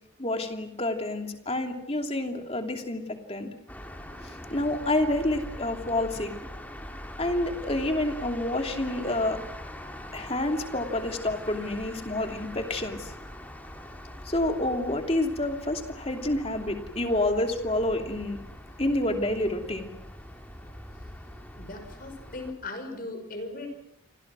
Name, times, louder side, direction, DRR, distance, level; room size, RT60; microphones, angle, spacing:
voice 1, 0.2-3.0 3.3-3.5 4.3-6.3 7.2-9.4 10.1-13.1 14.2-18.4 18.8-19.9, left 1 dB, 30° left, 5 dB, 2.7 m, -28 dB
sound 1, 3.7-22.5, left 1 dB, 10° left, 2.9 m, -42 dB
voice 2, 21.6-23.7, left 2 dB, 45° left, 6 dB, 5.8 m, -38 dB
29.0 x 25.0 x 6.2 m, 0.79 s
head